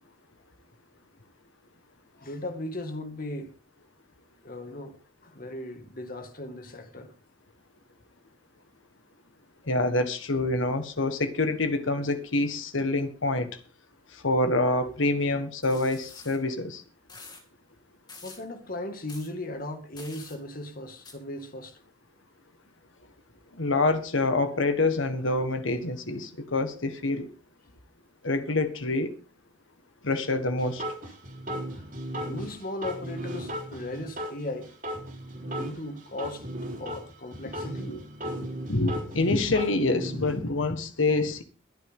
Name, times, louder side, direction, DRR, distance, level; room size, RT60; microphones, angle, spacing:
voice 1, 2.2-3.5 4.4-7.1 18.2-21.8 31.7-31.9 32.2-34.7 35.5-36.4 36.7-37.9, left 1 dB, 45° left, 2.1 m, -37 dB
voice 2, 9.7-13.5 14.2-16.8 23.6-27.3 28.2-29.1 30.0-30.8 37.9-38.0 38.7-41.4, left 2 dB, 80° left, 1.6 m, -26 dB
sound 1, 15.6-16.4 17.1-17.4 18.1-18.4 19.1-19.3 20.0-20.4 21.0-21.1, left 3 dB, 20° left, 2.9 m, -47 dB
sound 2, 30.6-34.4 34.6-37.0 37.3-40.4, equal, 45° right, 4.1 m, -36 dB
22.5 x 9.1 x 3.8 m
head